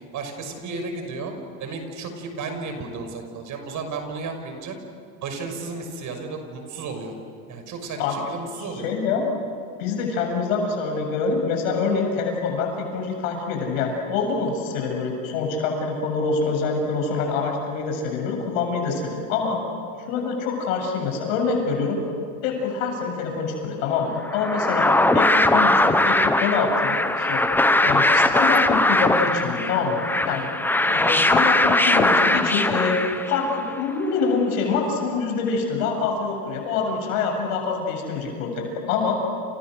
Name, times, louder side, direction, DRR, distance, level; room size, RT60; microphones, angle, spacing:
voice 1, 0.1-1.3 1.6-4.8 5.2-7.1 7.5-8.9, right 4 dB, 45° right, 5 dB, 6.1 m, -33 dB
voice 2, 8.6-9.3 9.8-19.6 20.1-22.0 22.4-27.4 27.8-30.5 30.9-33.0 33.3-39.2, left 4 dB, 85° left, 2 dB, 7.9 m, -25 dB
sound 1, 24.2-33.6, left 2 dB, 5° left, 1.0 m, -20 dB
29.5 x 29.5 x 6.5 m, 2.2 s
supercardioid pair, 120°, 40 cm